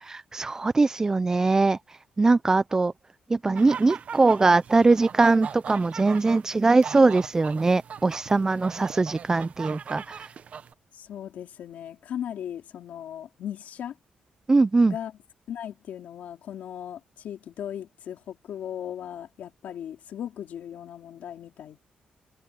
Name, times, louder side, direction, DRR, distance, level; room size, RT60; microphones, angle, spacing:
voice 1, 0.0-1.8 2.2-2.9 3.3-10.3 14.5-14.9, right 3 dB, 20° right, 0.4 m, -21 dB
sound 1, 3.6-10.7, right 7 dB, 55° right, 0.8 m, -40 dB
voice 2, 10.9-14.0 14.9-15.2 15.5-21.8, left 10 dB, 75° left, 3.7 m, -37 dB
cardioid pair, 100°, 3 cm